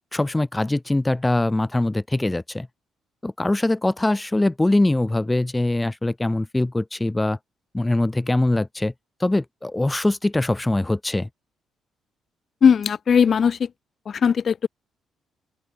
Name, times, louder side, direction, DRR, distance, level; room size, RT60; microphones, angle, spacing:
voice 1, 0.1-2.7 3.2-7.4 7.7-8.9 9.2-11.3, left 2 dB, 15° left, 3.2 m, -22 dB
voice 2, 12.6-13.6 14.1-14.7, left 7 dB, 50° left, 2.9 m, -18 dB
open air
cardioid pair, 90°, 0 cm